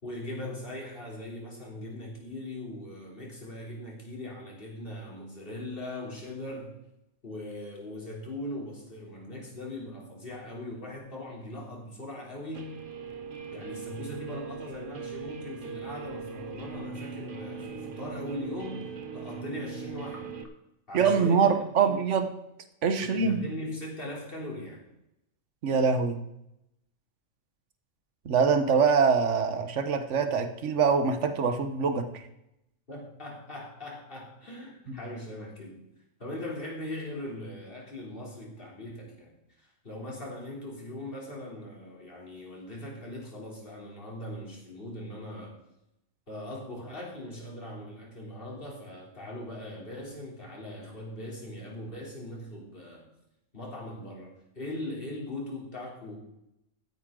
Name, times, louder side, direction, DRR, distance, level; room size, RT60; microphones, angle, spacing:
voice 1, 0.0-6.8 7.2-12.8 13.5-20.3 20.9-21.5 21.8-22.0 23.0-24.8 32.9-35.8 36.2-45.6 46.3-53.1 53.5-56.2, left 1 dB, 40° left, -2 dB, 3.5 m, -40 dB
Guitar, 12.5-20.4, right 5 dB, 40° right, 1.2 m, -40 dB
voice 2, 20.9-22.3 22.8-23.4 25.6-26.2 28.2-32.1 34.9-35.0, right 5 dB, 65° right, 8 dB, 1.4 m, -24 dB
15.5 x 9.7 x 3.8 m, 0.83 s
omnidirectional pair, 1.4 m